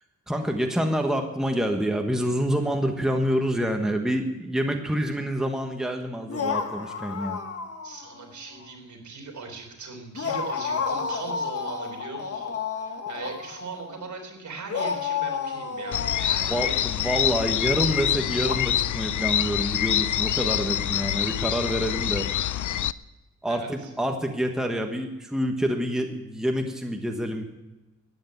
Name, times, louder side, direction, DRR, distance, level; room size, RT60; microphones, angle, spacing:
voice 1, 0.3-7.4 16.5-22.3 23.4-27.4, equal, ahead, 4 dB, 1.3 m, -27 dB
sound 1, 6.3-8.2 8.5-8.6 10.1-14.0 14.7-17.1 18.4-18.6, left 6 dB, 50° left, 1.7 m, -31 dB
voice 2, 7.8-17.1 22.0-22.3 23.5-23.9, right 4 dB, 65° right, 2 dB, 3.6 m, -40 dB
sound 2, 15.9-22.9, left 11 dB, 75° left, 0.5 m, -26 dB
14.0 x 9.7 x 9.5 m, 1.1 s
wide cardioid pair, 135°, 31 cm